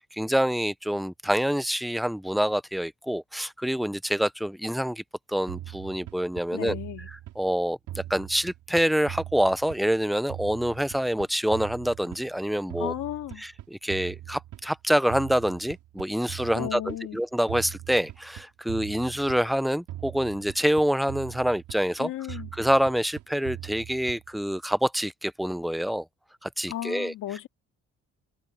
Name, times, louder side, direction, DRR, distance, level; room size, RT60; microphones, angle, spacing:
voice 1, 0.1-5.0 5.3-6.8 7.4-12.9 13.4-26.0 26.4-27.1, equal, ahead, 0.5 m, -26 dB
sound 1, 5.5-7.6 7.9-10.0 10.3-12.4 12.7-14.8 15.1-17.1 17.5-19.6 19.9-22.0 22.3-24.4, right 13 dB, 90° right, 5.8 m, -41 dB
voice 2, 6.5-7.1 12.8-13.4 16.5-17.2 22.0-22.5 26.7-27.5, left 13 dB, 80° left, 2.8 m, -34 dB
cardioid pair, 90°, 30 cm